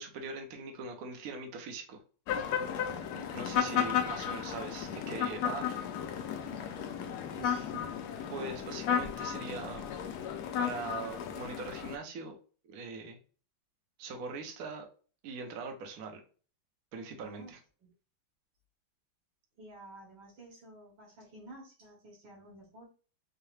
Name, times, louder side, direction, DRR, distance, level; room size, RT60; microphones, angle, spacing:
voice 1, 0.0-2.0 3.3-5.8 8.3-9.9 10.6-12.4 12.6-13.2 14.0-14.9 15.2-16.2 16.9-17.6, right 4 dB, 60° right, 4 dB, 1.0 m, -41 dB
sound 1, 2.3-12.0, left 8 dB, 70° left, 0.9 m, -34 dB
voice 2, 2.9-3.4 6.4-7.9 17.2-17.5 17.8-17.9 19.6-22.9, right 2 dB, 85° right, -2 dB, 2.4 m, -51 dB
4.6 x 2.1 x 3.1 m, 0.38 s
omnidirectional pair, 2.1 m